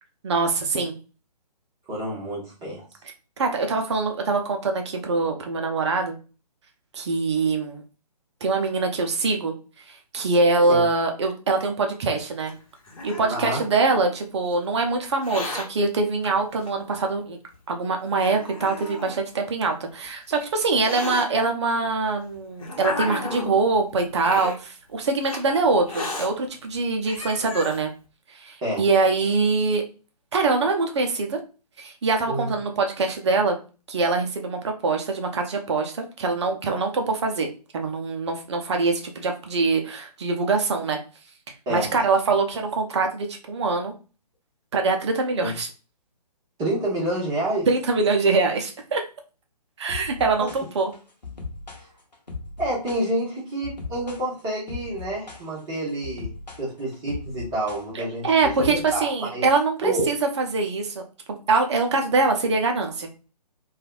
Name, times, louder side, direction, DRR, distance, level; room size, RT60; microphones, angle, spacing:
voice 1, 0.2-1.0 3.4-6.2 6.9-7.8 8.4-9.5 10.1-12.5 13.0-17.4 17.7-27.9 28.4-29.8 30.3-31.4 31.8-33.6 33.9-37.5 37.7-41.0 41.7-43.9 44.7-45.7 47.7-49.0 49.8-50.9 57.9-61.0 61.3-63.1, right 3 dB, 40° right, 3 dB, 0.6 m, -23 dB
voice 2, 1.9-2.8 10.7-10.8 13.3-13.6 28.6-28.8 32.3-32.5 41.7-41.9 45.4-45.5 46.6-47.7 52.6-56.3 56.6-59.5 59.8-60.1, right 1 dB, 20° right, -7 dB, 1.2 m, -28 dB
Hiss, 12.5-14.1 15.1-15.7 16.6-16.7 17.5-17.6 18.2-19.2 20.0-21.3 22.1-23.6 24.2-24.6 25.2-25.4 25.9-26.3 26.8-26.9 27.1-27.8, left 2 dB, 55° left, 1.0 m, -34 dB
sound 1, 49.9-59.5, left 4 dB, 85° left, 1.0 m, -38 dB
3.2 x 2.4 x 2.3 m, 0.34 s
figure-of-eight pair, 135°, 21 cm